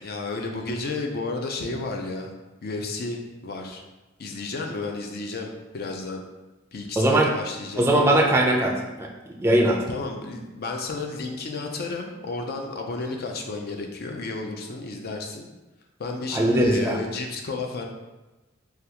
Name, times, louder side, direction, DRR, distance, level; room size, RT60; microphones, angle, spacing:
voice 1, 0.0-2.3 2.6-3.8 4.2-5.5 5.7-6.2 6.7-7.8 9.9-15.5 16.0-17.9, left 3 dB, 55° left, 2 dB, 0.4 m, -32 dB
voice 2, 7.0-7.3 7.8-9.1 9.4-9.8 16.3-17.0, right 1 dB, 15° right, -1 dB, 0.4 m, -20 dB
3.4 x 2.3 x 2.8 m, 1.1 s
head